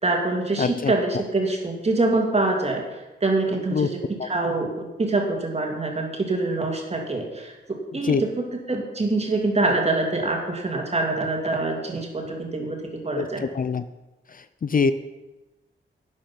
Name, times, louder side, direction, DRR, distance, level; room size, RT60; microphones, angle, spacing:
voice 1, 0.0-13.4, right 2 dB, 30° right, 1 dB, 2.6 m, -25 dB
voice 2, 0.6-0.9 3.7-3.9 4.2-4.3 8.0-8.2 13.1-13.8 14.3-14.9, left 5 dB, 45° left, 12 dB, 0.5 m, -24 dB
12.0 x 10.0 x 5.8 m, 1.1 s
wide cardioid pair, 120°, 21 cm